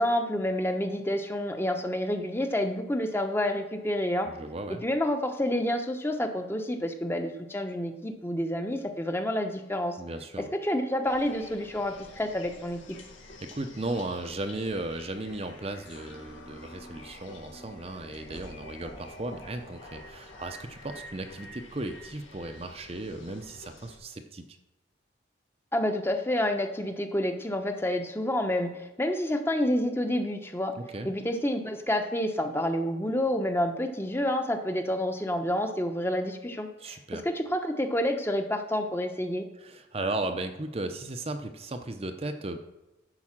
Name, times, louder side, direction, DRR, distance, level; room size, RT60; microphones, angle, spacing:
voice 1, 0.0-4.3 4.8-10.0 10.4-12.8 25.7-28.7 29.0-30.7 31.0-36.7 37.2-39.5, left 1 dB, 10° left, 5 dB, 0.9 m, -28 dB
voice 2, 4.3-4.8 10.0-10.5 13.4-24.6 30.8-31.1 36.8-37.2 39.6-42.6, right 2 dB, 30° right, 6 dB, 0.7 m, -36 dB
sound 1, 11.0-24.0, left 1 dB, 90° left, 2.0 m, -48 dB
11.0 x 4.8 x 7.4 m, 0.99 s
head